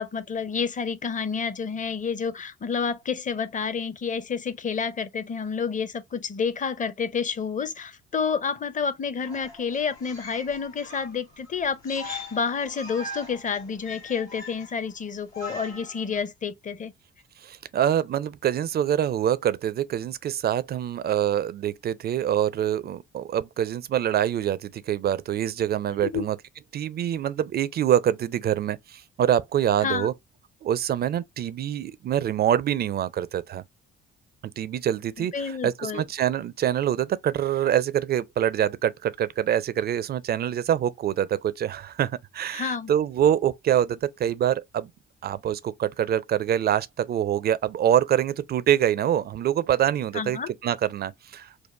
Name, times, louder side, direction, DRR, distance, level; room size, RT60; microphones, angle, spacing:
voice 1, 0.0-16.9 26.0-26.2 29.8-30.1 35.2-36.0 42.5-42.9 50.1-50.5, left 6 dB, 25° left, 0.6 m, -29 dB
sound 1, 9.2-16.2, left 2 dB, 80° left, 1.3 m, -41 dB
voice 2, 17.4-26.4 26.7-30.1 30.6-33.6 34.6-44.9 45.2-51.7, right 10 dB, 30° right, 0.4 m, -25 dB
4.5 x 2.1 x 2.9 m
figure-of-eight pair, 40°, 32 cm